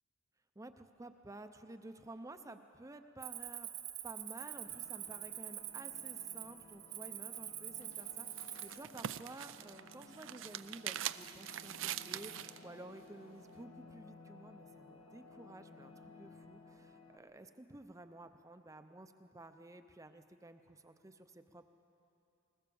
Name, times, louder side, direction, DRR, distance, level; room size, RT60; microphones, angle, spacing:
voice 1, 0.6-3.7 4.0-21.7, right 2 dB, 15° right, 8 dB, 0.6 m, -53 dB
Cricket, 3.2-8.8, right 12 dB, 80° right, 1.9 m, -45 dB
sound 1, 4.5-17.2, left 3 dB, 85° left, 1.7 m, -58 dB
sound 2, 7.8-12.6, right 11 dB, 65° right, 0.5 m, -43 dB
20.5 x 20.5 x 7.0 m, 2.8 s
head